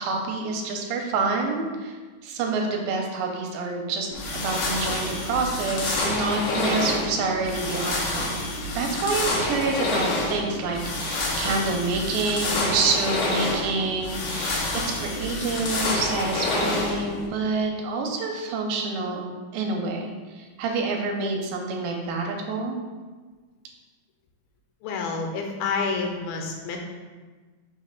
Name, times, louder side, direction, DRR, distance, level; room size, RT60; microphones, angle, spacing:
voice 1, 0.0-1.9 2.2-8.4 8.7-19.3 19.5-22.8, right 3 dB, 85° right, 1 dB, 2.4 m, -27 dB
sound 1, 4.1-17.3, left 2 dB, 70° left, 2.3 m, -28 dB
voice 2, 24.8-26.8, left 4 dB, 90° left, 2 dB, 2.7 m, -28 dB
5.7 x 3.2 x 5.2 m, 1.4 s
omnidirectional pair, 4.1 m